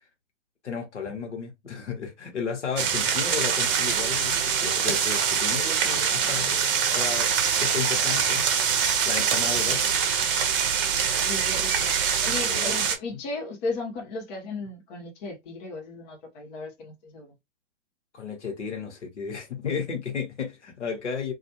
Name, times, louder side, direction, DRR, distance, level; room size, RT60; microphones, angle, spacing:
voice 1, 0.6-6.7 6.9-7.3 7.6-8.5 9.0-9.8 12.5-12.8 18.1-21.3, left 6 dB, 75° left, 1.0 m, -33 dB
sound 1, 2.8-13.0, right 7 dB, 50° right, 0.7 m, -24 dB
voice 2, 11.2-11.9 12.2-17.3, left 3 dB, 40° left, 0.8 m, -35 dB
2.4 x 2.3 x 2.8 m
figure-of-eight pair, 115°, 35 cm